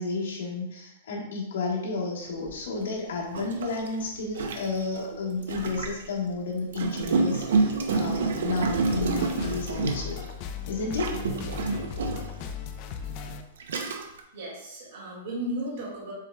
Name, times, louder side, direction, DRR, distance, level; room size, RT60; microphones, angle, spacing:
voice 1, 0.0-10.2 10.7-11.1, left 3 dB, 80° left, -3 dB, 1.3 m, -32 dB
Gurgling, 2.5-2.6 3.3-6.1 6.7-10.3 10.9-12.4 13.1-13.2 13.6-14.2, right 3 dB, 75° right, 0.6 m, -28 dB
sound 1, 8.9-13.4, left 7 dB, 30° left, 0.3 m, -37 dB
voice 2, 14.3-16.1, right 1 dB, 50° right, -4 dB, 1.7 m, -34 dB
7.1 x 3.4 x 2.2 m, 0.86 s
supercardioid pair, 175°, 0 cm